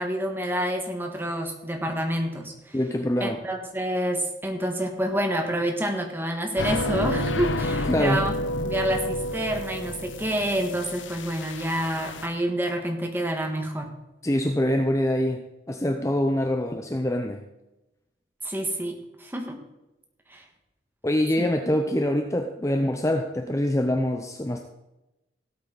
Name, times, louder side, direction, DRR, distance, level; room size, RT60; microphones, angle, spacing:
voice 1, 0.0-2.8 3.2-8.3 8.6-13.9 18.4-19.6 20.3-20.4 21.4-21.5, right 1 dB, 10° right, 3 dB, 1.6 m, -28 dB
voice 2, 2.7-3.4 7.8-8.2 14.2-15.4 15.7-17.4 21.0-24.6, left 1 dB, 15° left, 5 dB, 0.6 m, -24 dB
sound 1, 6.6-12.3, left 1 dB, 90° left, 0.8 m, -30 dB
16.5 x 8.3 x 4.1 m, 0.96 s
head